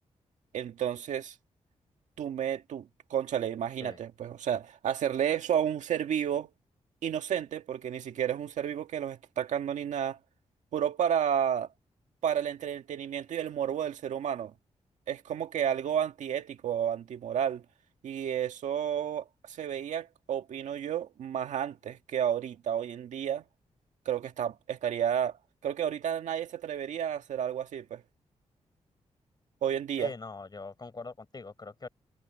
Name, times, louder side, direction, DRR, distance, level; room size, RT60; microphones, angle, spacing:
voice 1, 0.5-1.3 2.2-6.5 7.0-10.2 10.7-11.7 12.2-14.5 15.1-17.6 18.0-23.4 24.1-25.3 25.6-28.0 29.6-30.1, right 9 dB, 90° right, 1.9 m, -31 dB
voice 2, 30.0-31.9, left 3 dB, 35° left, 7.4 m, -42 dB
cardioid pair, 85°, 12 cm